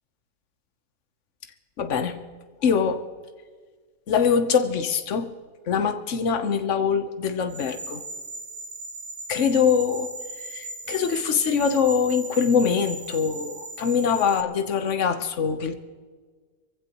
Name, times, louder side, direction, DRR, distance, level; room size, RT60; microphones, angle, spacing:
voice 1, 1.8-2.2 2.6-3.0 4.1-5.3 5.7-8.0 9.3-10.1 10.5-15.7, left 6 dB, 50° left, 8 dB, 1.2 m, -23 dB
sound 1, 7.5-14.4, right 2 dB, 35° right, 0.9 m, -37 dB
23.0 x 16.0 x 3.0 m, 1.5 s
omnidirectional pair, 1.7 m